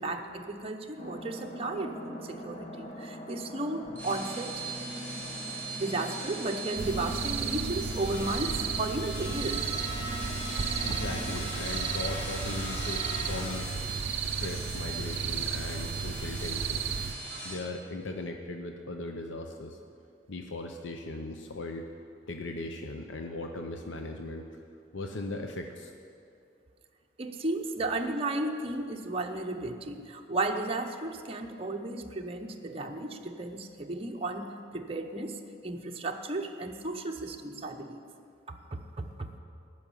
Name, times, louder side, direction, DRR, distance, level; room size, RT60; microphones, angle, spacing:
voice 1, 0.0-4.6 5.8-9.7 10.6-11.0 27.2-38.0 38.5-39.3, right 2 dB, 30° right, 2 dB, 0.8 m, -34 dB
sound 1, 1.0-11.4, equal, 35° left, 1.1 m, -42 dB
sound 2, 3.8-17.5, right 2 dB, 10° left, 2.6 m, -38 dB
sound 3, 6.8-17.1, right 6 dB, 65° right, 0.5 m, -34 dB
voice 2, 10.8-13.7 14.1-16.8 17.4-19.8 20.3-21.8 22.3-24.5 24.9-25.9, left 2 dB, 75° left, 4 dB, 0.8 m, -38 dB
14.0 x 6.3 x 9.9 m, 2.4 s
head